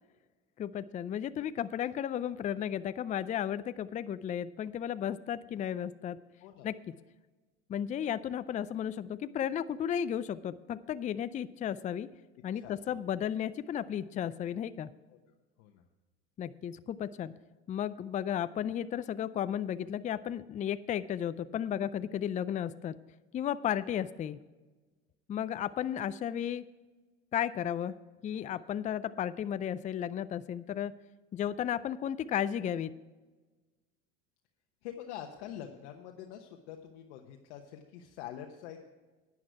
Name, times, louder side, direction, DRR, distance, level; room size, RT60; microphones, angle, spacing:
voice 1, 0.6-6.2 6.6-6.8 7.7-12.1 12.4-14.9 16.4-17.3 17.7-23.0 23.3-24.4 25.3-26.6 27.3-28.0 28.2-30.9 31.3-32.9, left 9 dB, 25° left, 14 dB, 0.4 m, -34 dB
voice 2, 12.5-13.0 15.1-15.2 15.6-15.8 34.8-38.9, left 10 dB, 70° left, 3 dB, 1.1 m, -45 dB
11.0 x 9.8 x 4.7 m, 1.2 s
hypercardioid pair, 95°, 33 cm